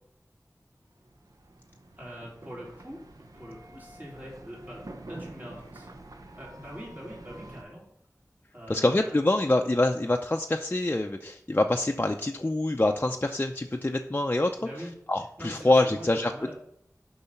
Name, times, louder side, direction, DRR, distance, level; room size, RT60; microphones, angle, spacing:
sound 1, 0.9-7.6, right 1 dB, 75° right, 0.9 m, -47 dB
voice 1, 2.0-3.0 3.3-5.9 6.4-7.8 8.5-9.2 14.6-14.9 15.4-16.5, equal, 30° right, -5 dB, 3.6 m, -43 dB
voice 2, 8.7-14.5 15.1-16.5, left 2 dB, 30° left, 3 dB, 0.5 m, -25 dB
6.9 x 5.6 x 5.7 m, 0.73 s
wide cardioid pair, 55°, 6 cm